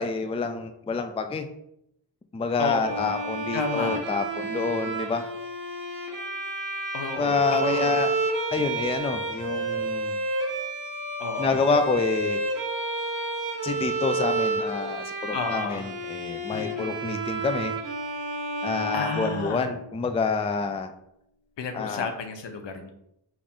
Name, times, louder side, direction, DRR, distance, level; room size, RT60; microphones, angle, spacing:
voice 1, 0.0-1.5 2.3-5.3 7.2-8.1 8.5-10.2 11.4-12.4 13.6-17.8 18.6-20.9 21.7-22.1, left 4 dB, 15° left, 7 dB, 0.3 m, -27 dB
voice 2, 2.6-3.1 3.5-4.0 6.9-8.0 11.2-11.6 15.3-15.9 16.5-16.9 18.9-19.7 21.6-22.9, left 4 dB, 85° left, 6 dB, 0.7 m, -32 dB
Bowed string instrument, 2.8-20.0, right 2 dB, 45° right, 1.1 m, -30 dB
4.9 x 2.6 x 3.6 m, 0.77 s
wide cardioid pair, 80°, 42 cm